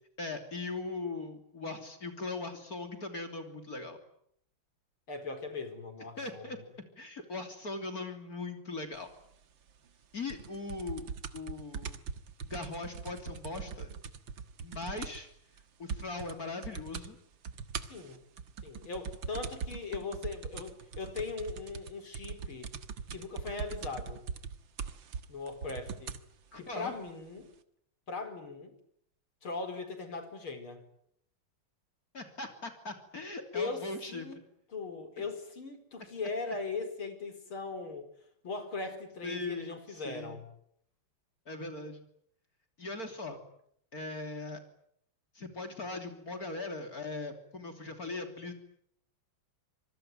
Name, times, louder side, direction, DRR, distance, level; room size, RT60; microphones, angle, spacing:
voice 1, 0.2-4.0 6.2-6.6 7.0-9.1 10.1-11.0 11.3-12.0 12.4-13.9 14.6-15.3 15.8-17.2 26.5-26.9 32.1-34.3 35.2-35.3 39.2-40.4 41.5-42.0 42.8-43.4 43.9-44.6 45.4-48.5, left 3 dB, 45° left, 6 dB, 3.6 m, -40 dB
voice 2, 5.1-6.6 17.9-18.2 18.6-22.7 23.1-24.2 25.3-26.1 26.6-27.5 28.1-28.7 29.4-30.8 33.5-34.4 34.7-38.1 38.4-40.5, left 4 dB, 90° left, 7 dB, 5.3 m, -39 dB
sound 1, 10.3-15.3 15.6-15.7 15.9-16.4 16.6-17.1 17.4-26.3 27.1-27.2, right 6 dB, 70° right, 2.2 m, -41 dB
26.5 x 24.0 x 9.3 m, 0.71 s
omnidirectional pair, 2.2 m